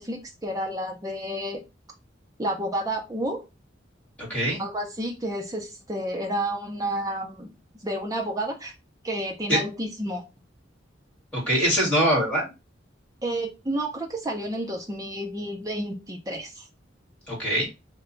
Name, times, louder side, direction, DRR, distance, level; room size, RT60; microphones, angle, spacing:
voice 1, 0.0-1.6 2.4-3.4 4.6-7.5 7.8-8.7 9.0-10.2 13.2-16.6, right 1 dB, 20° right, 2 dB, 0.7 m, -30 dB
voice 2, 4.2-4.6 9.5-9.6 11.3-12.5 17.3-17.6, equal, 10° left, -3 dB, 1.8 m, -23 dB
2.9 x 2.2 x 3.8 m, 0.26 s
head